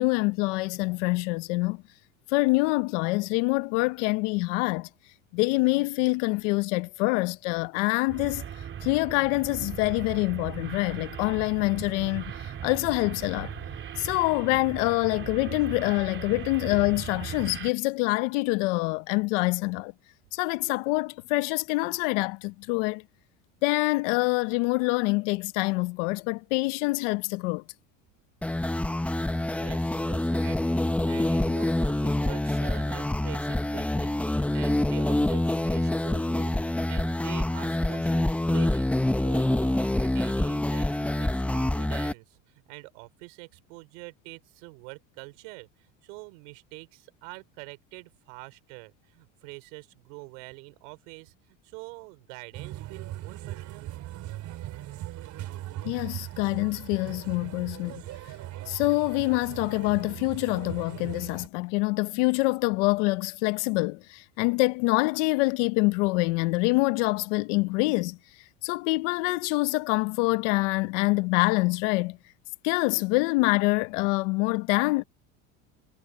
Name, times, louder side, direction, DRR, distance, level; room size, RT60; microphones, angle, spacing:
voice 1, 0.0-1.8 2.3-4.9 5.3-8.5 8.8-13.5 14.0-19.9 20.3-23.0 23.6-27.6 55.8-58.0 58.7-68.2 68.6-72.2 72.6-75.0, left 24 dB, 85° left, 1.0 m, -26 dB
sound 1, 8.1-17.7, right 9 dB, 35° right, 2.9 m, -38 dB
sound 2, 28.4-42.1, left 1 dB, 5° left, 0.8 m, -26 dB
voice 2, 29.4-53.9, right 30 dB, 85° right, 5.1 m, -45 dB
sound 3, 52.5-61.5, right 14 dB, 55° right, 3.8 m, -39 dB
cardioid pair, 125°, 36 cm